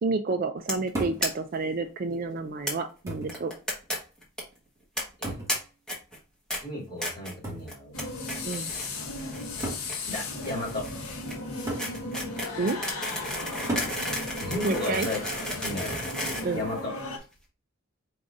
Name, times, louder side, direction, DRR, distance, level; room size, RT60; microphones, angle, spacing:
voice 1, 0.0-3.5 8.4-8.7 12.6-12.8 14.6-15.1 16.4-16.7, right 3 dB, 40° right, 8 dB, 0.4 m, -29 dB
sound 1, 0.7-0.9 1.2-1.3 1.5-1.6 1.9-2.0 2.7-2.8 3.3-4.0 4.2-4.4 5.0-5.5 5.9-6.2 6.5-6.6 7.0-7.3 7.7-8.0 8.3-8.9 9.2-17.2, equal, 5° left, 1.3 m, -33 dB
sound 2, 0.9-1.3 2.3-2.4 3.1-3.4 5.2-5.6 7.4-7.7 8.8-8.9 9.6-9.9 11.7-12.0 13.7-14.0 15.5-15.9, right 2 dB, 15° right, 1.1 m, -34 dB
voice 2, 6.6-8.0 10.0-10.9 14.4-15.2 15.6-16.0 16.5-17.0, left 2 dB, 20° left, -7 dB, 2.5 m, -34 dB
sound 3, 7.9-17.2, left 2 dB, 75° left, 1.1 m, -36 dB
4.8 x 3.8 x 2.5 m, 0.34 s
head